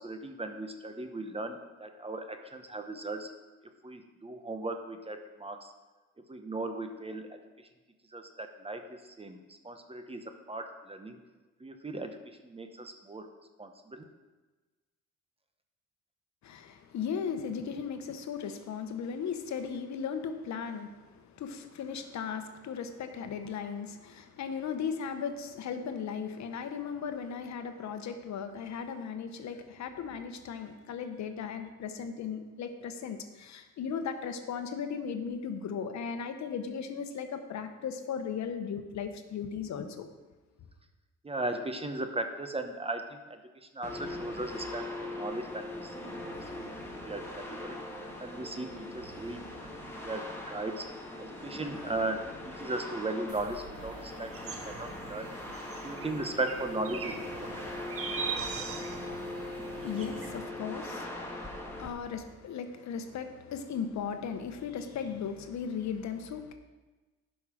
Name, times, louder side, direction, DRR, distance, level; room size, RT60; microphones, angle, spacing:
voice 1, 0.0-3.3 3.8-5.7 6.3-7.4 8.1-11.2 11.6-12.2 12.4-13.3 13.6-14.1 41.2-47.8 48.2-50.8 51.2-55.3 55.8-57.7, right 2 dB, 20° right, 6 dB, 0.9 m, -37 dB
voice 2, 16.4-40.1 59.7-66.5, left 6 dB, 65° left, 8 dB, 1.0 m, -37 dB
sound 1, 43.8-61.9, left 1 dB, 10° left, 1.7 m, -41 dB
sound 2, 53.3-60.4, right 6 dB, 50° right, 1.0 m, -42 dB
11.5 x 5.5 x 5.0 m, 1.2 s
cardioid pair, 90°, 30 cm